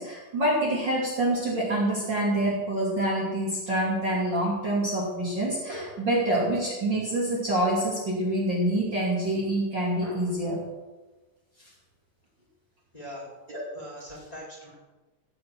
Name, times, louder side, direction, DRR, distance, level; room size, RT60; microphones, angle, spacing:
voice 1, 0.0-10.6 13.5-13.6, right 1 dB, 35° right, -6 dB, 3.3 m, -26 dB
voice 2, 12.9-13.3 13.7-14.8, equal, 10° left, -4 dB, 4.3 m, -41 dB
16.5 x 6.2 x 7.7 m, 1.2 s
omnidirectional pair, 3.7 m